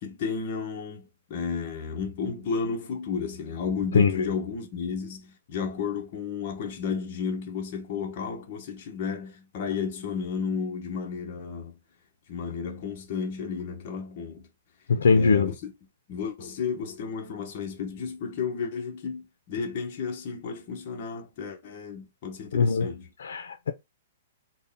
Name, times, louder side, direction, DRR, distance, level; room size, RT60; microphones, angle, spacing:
voice 1, 0.0-11.7 12.3-14.5 15.1-15.7 16.1-23.1, left 5 dB, 40° left, 0.9 m, -33 dB
voice 2, 14.9-15.5 22.5-22.9 23.2-23.7, left 4 dB, 85° left, 0.5 m, -21 dB
4.0 x 2.1 x 3.5 m
hypercardioid pair, 165°, 0 cm